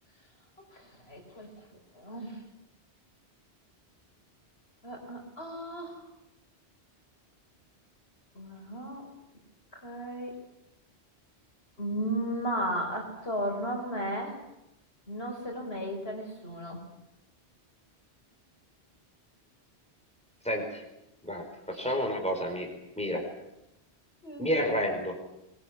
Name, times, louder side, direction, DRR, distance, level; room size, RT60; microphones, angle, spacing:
voice 1, 0.7-1.5 1.9-2.4 4.8-6.0 8.3-9.1 9.7-10.4 11.8-14.4 15.1-16.8 21.7-21.9 24.2-24.5, right 1 dB, 65° left, 2 dB, 5.8 m, -35 dB
voice 2, 21.2-22.7 23.0-23.2 24.4-25.1, equal, 5° left, 2 dB, 4.8 m, -30 dB
22.5 x 22.0 x 9.8 m, 0.87 s
omnidirectional pair, 1.1 m